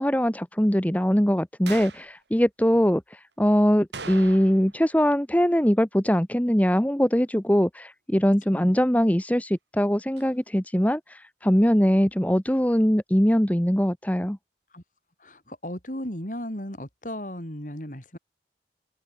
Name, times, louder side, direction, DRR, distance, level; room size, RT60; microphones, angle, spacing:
voice 1, 0.0-14.4, equal, 10° left, 1.2 m, -22 dB
sound 1, 1.7-2.1 3.9-4.8 5.0-5.1 10.2-10.3, right 4 dB, 80° right, 3.3 m, -39 dB
voice 2, 15.2-18.2, equal, 45° left, 5.6 m, -35 dB
head